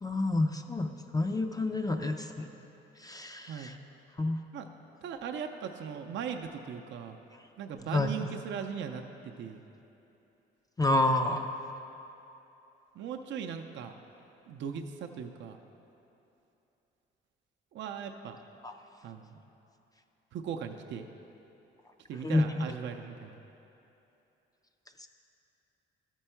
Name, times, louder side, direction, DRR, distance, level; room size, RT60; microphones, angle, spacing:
voice 1, 0.0-2.5 3.0-3.7 4.2-4.4 7.9-8.1 10.8-11.4 18.6-18.7 22.2-22.6 25.0-25.1, left 2 dB, 20° left, 5 dB, 0.4 m, -29 dB
voice 2, 5.0-7.2 7.6-9.6 12.9-13.9 14.5-15.6 17.7-18.4 19.0-19.4 20.3-21.1 22.1-23.4, right 7 dB, 65° right, 4 dB, 0.5 m, -39 dB
12.5 x 4.5 x 4.4 m, 2.9 s
cardioid pair, 90°, 20 cm